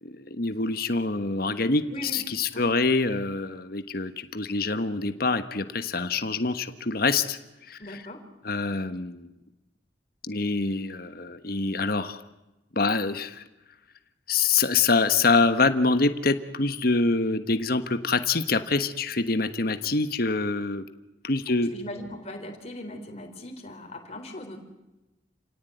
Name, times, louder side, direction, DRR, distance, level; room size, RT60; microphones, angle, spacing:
voice 1, 0.0-7.4 7.7-8.0 8.4-9.3 10.2-12.2 12.7-13.4 14.3-20.9 21.2-21.7, left 3 dB, 55° left, 10 dB, 1.4 m, -25 dB
voice 2, 1.9-2.2 2.5-2.7 7.8-8.3 21.7-24.6, left 1 dB, 35° left, 4 dB, 4.2 m, -39 dB
29.5 x 18.0 x 9.4 m, 1.0 s
head